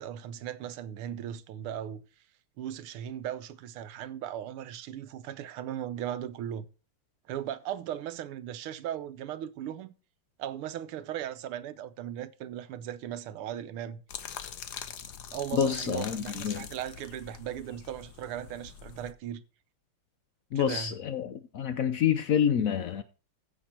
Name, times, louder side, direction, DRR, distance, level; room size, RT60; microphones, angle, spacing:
voice 1, 0.0-2.0 2.6-6.7 7.3-9.9 10.4-14.0 15.3-19.4 20.5-21.0, right 10 dB, 85° right, 1.7 m, -37 dB
sound 1, 14.1-19.1, left 8 dB, 60° left, 1.3 m, -43 dB
voice 2, 15.5-16.7 20.5-23.0, left 8 dB, 85° left, 0.7 m, -28 dB
15.0 x 6.1 x 4.3 m
omnidirectional pair, 2.4 m